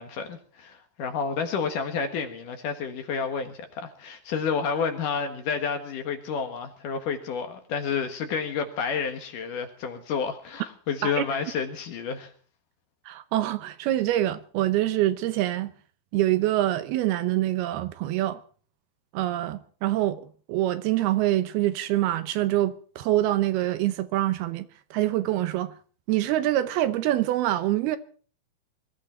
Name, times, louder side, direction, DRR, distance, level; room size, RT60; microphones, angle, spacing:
voice 1, 0.0-12.3, left 6 dB, 60° left, 2.8 m, -30 dB
voice 2, 13.1-15.7 16.1-18.4 19.1-20.2 20.5-25.7 26.1-28.0, right 14 dB, 75° right, 2.7 m, -25 dB
22.5 x 14.0 x 4.4 m
omnidirectional pair, 4.7 m